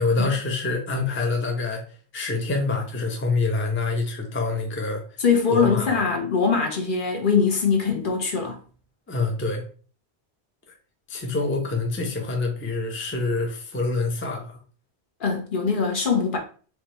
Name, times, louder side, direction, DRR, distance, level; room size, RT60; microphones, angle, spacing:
voice 1, 0.0-1.8 2.1-5.0 5.5-6.0 9.1-9.6 11.1-14.6, left 3 dB, 15° left, 0.6 m, -26 dB
voice 2, 5.2-8.6 15.2-16.4, left 5 dB, 50° left, 1.1 m, -22 dB
4.6 x 3.3 x 3.0 m
omnidirectional pair, 1.1 m